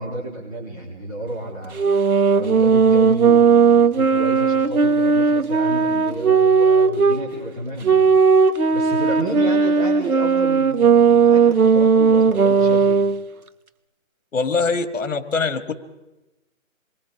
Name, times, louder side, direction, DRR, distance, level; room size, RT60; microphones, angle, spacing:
voice 1, 0.0-1.8 2.3-8.2 8.7-13.0, right 2 dB, 25° right, -4 dB, 3.3 m, -31 dB
sound 1, 1.7-7.2 7.8-13.2, right 5 dB, 90° right, 1.4 m, -16 dB
voice 2, 14.3-15.7, left 4 dB, 60° left, 10 dB, 2.0 m, -23 dB
27.5 x 21.5 x 4.9 m, 1.0 s
hypercardioid pair, 170°, 42 cm